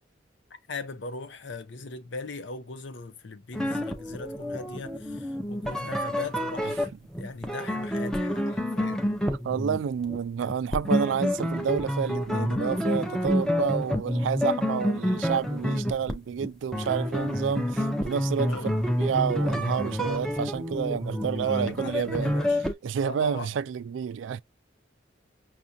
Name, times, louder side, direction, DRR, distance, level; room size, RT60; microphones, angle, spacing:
voice 1, 0.7-6.9 7.2-9.0 18.5-18.7 21.4-22.6 23.0-23.5, left 3 dB, 80° left, 0.7 m, -39 dB
sound 1, 3.5-22.7, equal, 5° left, 0.5 m, -28 dB
voice 2, 9.3-18.6 19.0-22.4 22.8-24.4, right 7 dB, 85° right, 0.3 m, -29 dB
5.9 x 2.4 x 2.6 m
head